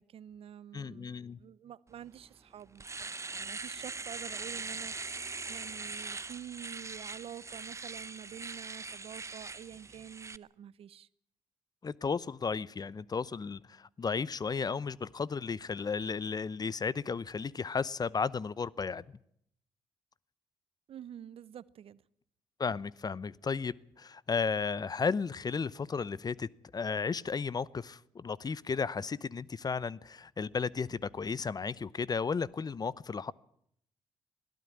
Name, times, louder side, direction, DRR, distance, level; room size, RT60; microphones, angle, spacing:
voice 1, 0.0-1.1 1.4-11.1 20.9-22.0, right 10 dB, 60° right, 0.8 m, -48 dB
voice 2, 0.7-1.4 11.8-19.0 22.6-33.3, left 5 dB, 35° left, 0.8 m, -34 dB
Domestic sounds home sounds, 2.1-2.2 2.6-10.4, right 4 dB, 25° right, 0.8 m, -41 dB
21.5 x 13.0 x 9.8 m
supercardioid pair, 55°, 11 cm